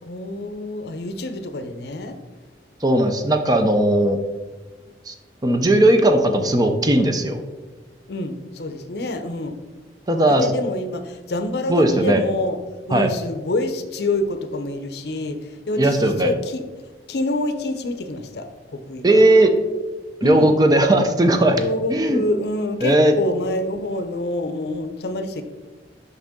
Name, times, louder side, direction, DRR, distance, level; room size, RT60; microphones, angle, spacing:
voice 1, 0.0-2.2 8.1-9.6 10.3-12.6 12.9-16.6 17.1-18.5 18.7-19.2 20.2-20.6 21.5-25.4, left 1 dB, 65° left, 8 dB, 0.6 m, -27 dB
voice 2, 2.8-4.2 5.1-5.2 5.4-7.4 10.1-10.5 11.7-12.2 12.9-13.1 15.8-16.3 19.0-19.5 20.2-21.6 21.9-22.2 22.8-23.1, right 1 dB, 20° right, 6 dB, 0.5 m, -17 dB
6.4 x 5.4 x 3.6 m, 1.2 s
head